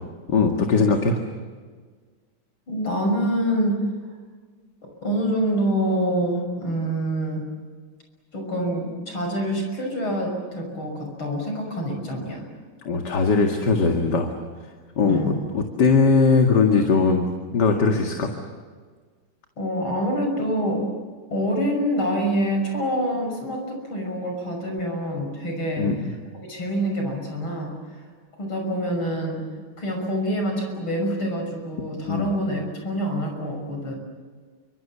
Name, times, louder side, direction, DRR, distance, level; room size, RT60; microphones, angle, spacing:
voice 1, 0.3-1.2 12.8-14.3 15.0-18.3 25.8-26.0 32.1-32.3, left 4 dB, 55° left, 3 dB, 2.7 m, -20 dB
voice 2, 2.7-3.8 4.8-7.4 8.3-12.5 15.0-15.4 19.6-20.9 21.3-25.9 26.4-27.7 28.4-29.5 29.8-34.0, equal, 85° left, 2 dB, 7.0 m, -26 dB
29.5 x 25.5 x 7.3 m, 1.5 s
omnidirectional pair, 2.2 m